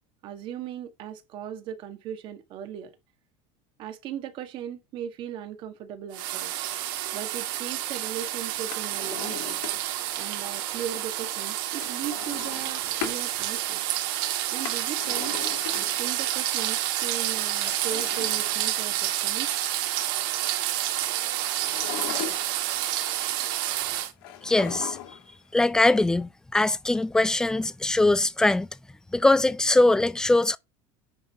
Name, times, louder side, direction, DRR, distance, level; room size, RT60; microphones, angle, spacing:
voice 1, 0.2-2.9 3.8-6.5 7.1-9.6 10.2-13.8 14.5-15.4 15.7-19.5, right 9 dB, 45° right, 1.6 m, -38 dB
sound 1, 6.1-24.1, right 13 dB, 70° right, 2.1 m, -29 dB
Drawer open or close, 8.6-10.1 11.8-13.2 14.4-16.2 17.4-19.1 21.5-22.8 24.2-25.3 25.6-25.7, left 10 dB, 85° left, 2.3 m, -38 dB
voice 2, 24.4-25.0 25.5-28.7 29.1-30.6, left 2 dB, 5° left, 0.4 m, -22 dB
9.6 x 3.7 x 5.4 m
cardioid pair, 160°, 12 cm